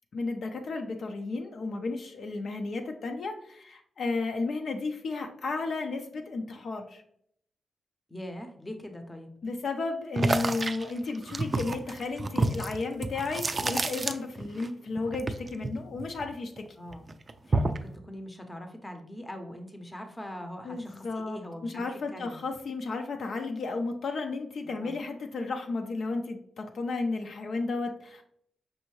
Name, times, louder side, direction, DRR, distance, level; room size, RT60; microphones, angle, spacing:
voice 1, 0.1-7.0 9.4-16.7 17.5-17.6 20.6-28.2, left 3 dB, 65° left, 4 dB, 0.5 m, -33 dB
voice 2, 8.1-9.3 16.8-17.1 17.4-22.4 24.6-24.9, left 1 dB, 15° left, 6 dB, 0.7 m, -42 dB
sound 1, 10.1-14.7 14.9-16.6 16.9-17.9, right 2 dB, 35° right, 0.3 m, -29 dB
5.5 x 2.6 x 3.0 m, 0.68 s
cardioid pair, 95°, 0 cm